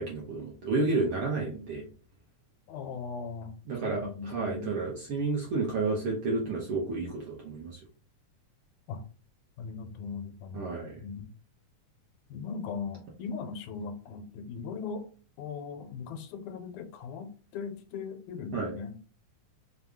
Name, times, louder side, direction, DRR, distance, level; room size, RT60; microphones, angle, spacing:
voice 1, 0.0-1.8 3.7-7.8 10.5-11.0 18.5-18.7, right 3 dB, 65° right, -3 dB, 1.4 m, -31 dB
voice 2, 2.7-3.6 3.8-4.8 8.9-9.0 9.6-10.8 11.0-11.3 12.3-15.1 15.4-19.0, left 5 dB, 80° left, 7 dB, 2.0 m, -39 dB
5.3 x 2.3 x 3.5 m, 0.40 s
omnidirectional pair, 3.5 m